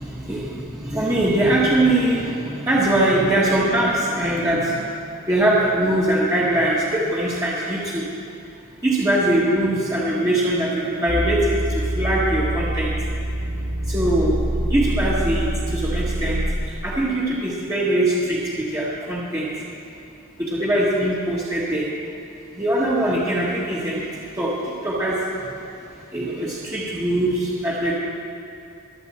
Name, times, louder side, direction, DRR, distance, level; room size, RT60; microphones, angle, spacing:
voice 1, 0.0-4.8 5.3-8.0 8.8-12.9 13.9-14.4 14.7-16.4 16.8-19.5 20.4-21.8 22.6-24.0 24.4-24.5 24.8-25.2 26.1-27.9, right 1 dB, 15° right, -7 dB, 1.4 m, -22 dB
sound 1, 11.1-16.5, right 1 dB, 75° right, 3.1 m, -25 dB
23.0 x 7.9 x 4.2 m, 2.7 s
head